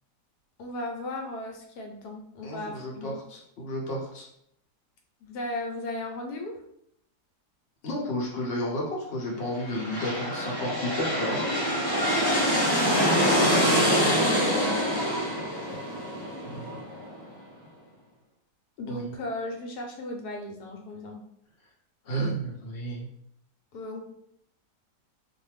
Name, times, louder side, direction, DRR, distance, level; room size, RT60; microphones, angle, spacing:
voice 1, 0.6-3.2 5.2-6.6 12.5-15.1 18.8-21.2 23.7-24.0, left 1 dB, 75° left, 1 dB, 1.1 m, -36 dB
voice 2, 2.4-4.2 7.8-11.5 16.4-16.8 18.9-19.1 22.0-23.1, equal, 50° left, -2 dB, 0.9 m, -32 dB
sound 1, 9.5-17.2, equal, 15° left, 0.9 m, -25 dB
2.6 x 2.3 x 3.2 m, 0.72 s
omnidirectional pair, 1.8 m